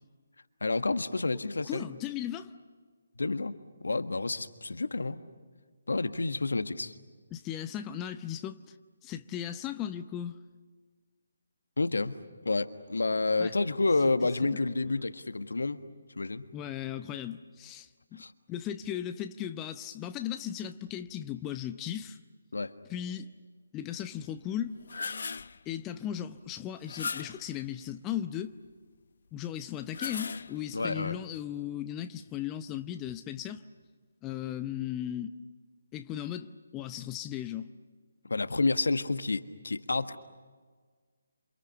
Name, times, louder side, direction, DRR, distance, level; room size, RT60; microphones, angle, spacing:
voice 1, 0.6-1.9 3.2-5.2 5.9-6.9 11.8-15.8 16.2-16.5 18.2-18.3 22.5-22.7 30.7-31.2 38.2-40.2, left 3 dB, 70° left, 10 dB, 1.5 m, -29 dB
voice 2, 1.6-2.5 7.3-8.7 9.0-10.4 13.4-13.5 14.4-14.6 14.9-15.0 16.5-18.2 18.5-22.2 22.9-23.3 23.7-24.8 25.7-28.6 29.3-33.6 34.2-35.3 35.9-37.7, left 10 dB, 15° left, 9 dB, 0.7 m, -37 dB
sound 1, 24.6-25.6 26.8-27.5 29.7-30.8, left 5 dB, 55° left, 0.7 m, -38 dB
28.0 x 28.0 x 7.0 m, 1.5 s
figure-of-eight pair, 150°, 0 cm